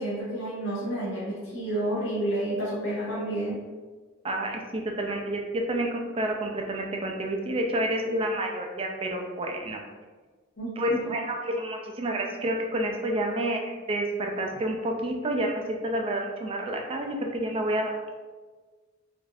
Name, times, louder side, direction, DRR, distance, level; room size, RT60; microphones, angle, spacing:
voice 1, 0.0-3.6 10.6-11.0, right 1 dB, 65° left, -7 dB, 0.7 m, -30 dB
voice 2, 4.2-9.8 10.8-17.9, right 1 dB, 30° right, 2 dB, 0.3 m, -29 dB
3.2 x 2.5 x 2.6 m, 1.4 s
head